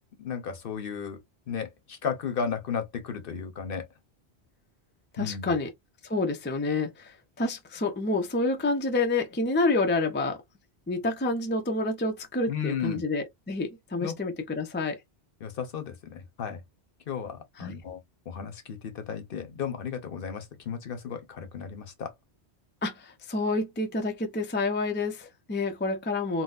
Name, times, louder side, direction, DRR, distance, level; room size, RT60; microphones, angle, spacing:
voice 1, 0.2-1.2 1.5-3.9 5.2-5.5 12.5-13.0 14.0-14.1 15.4-16.6 17.1-18.0 18.3-22.1, left 7 dB, 60° left, 0.9 m, -34 dB
voice 2, 5.1-5.7 6.0-10.4 10.9-15.0 17.6-17.7 22.8-26.4, left 2 dB, 15° left, 0.3 m, -28 dB
3.9 x 2.1 x 2.4 m
omnidirectional pair, 1.1 m